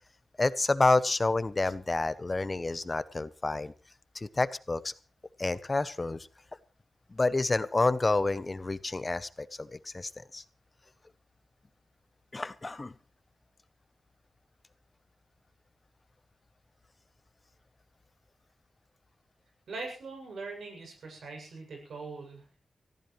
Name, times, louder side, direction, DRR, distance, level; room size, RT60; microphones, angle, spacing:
voice 1, 0.4-3.7 4.1-4.9 5.4-6.3 7.1-10.4 12.3-12.9, left 2 dB, 30° left, 15 dB, 0.9 m, -29 dB
voice 2, 19.7-22.6, right 3 dB, 85° right, 2 dB, 7.5 m, -42 dB
23.5 x 15.0 x 3.3 m, 0.35 s
wide cardioid pair, 105°, 0 cm